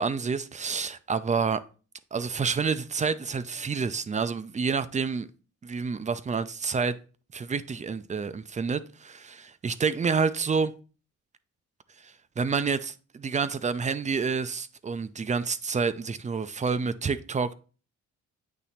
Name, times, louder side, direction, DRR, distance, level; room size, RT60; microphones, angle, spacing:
voice 1, 0.0-1.6 2.1-5.3 5.6-7.0 7.3-10.7 12.4-17.5, right 5 dB, 25° right, 0.5 m, -28 dB
8.4 x 3.0 x 4.2 m
cardioid pair, 90°, 30 cm